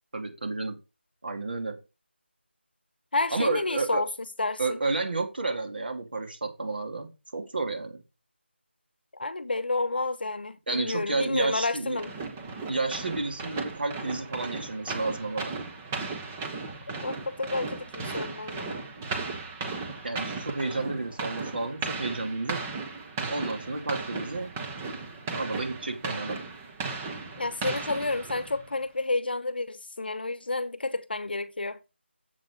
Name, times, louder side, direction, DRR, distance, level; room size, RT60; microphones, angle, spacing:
voice 1, 0.1-0.8 1.2-1.8 3.3-4.0 4.6-8.0 10.7-12.0 12.7-15.6 20.0-22.6 23.3-24.5 25.3-26.4, right 3 dB, 55° right, 2.8 m, -31 dB
voice 2, 3.1-4.1 4.4-4.8 9.1-12.1 17.0-18.9 27.4-31.8, left 3 dB, 55° left, 0.9 m, -30 dB
sound 1, 12.0-28.7, right 4 dB, 5° right, 0.4 m, -36 dB
7.5 x 7.2 x 5.0 m
figure-of-eight pair, 170°, 6 cm